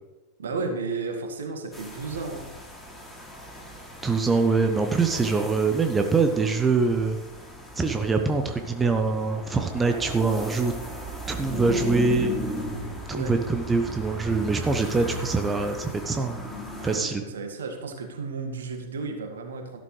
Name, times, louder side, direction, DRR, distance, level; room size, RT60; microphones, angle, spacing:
voice 1, 0.4-2.4 13.1-13.4 16.8-19.8, right 4 dB, 65° right, 4 dB, 1.9 m, -33 dB
sound 1, 1.7-17.0, equal, 5° left, 2.8 m, -36 dB
voice 2, 4.0-7.2 7.8-10.7 11.3-12.3 13.1-16.4 16.8-17.2, right 4 dB, 15° right, 6 dB, 1.0 m, -24 dB
13.5 x 12.0 x 3.3 m, 1.1 s
figure-of-eight pair, 90°, 0 cm